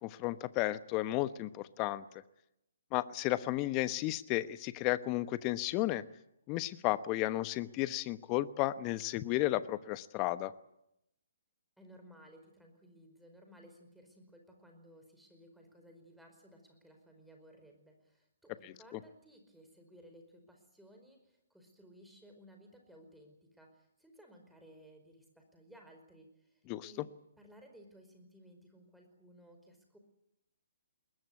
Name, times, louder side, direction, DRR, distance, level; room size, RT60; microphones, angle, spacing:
voice 1, 0.0-2.0 2.9-6.0 6.5-10.5 18.6-19.0 26.7-27.0, left 16 dB, 30° left, 15 dB, 1.0 m, -33 dB
voice 2, 11.8-27.1 27.4-30.0, equal, ahead, 3 dB, 4.9 m, -58 dB
21.5 x 20.0 x 9.4 m, 0.84 s
figure-of-eight pair, 135°, 0 cm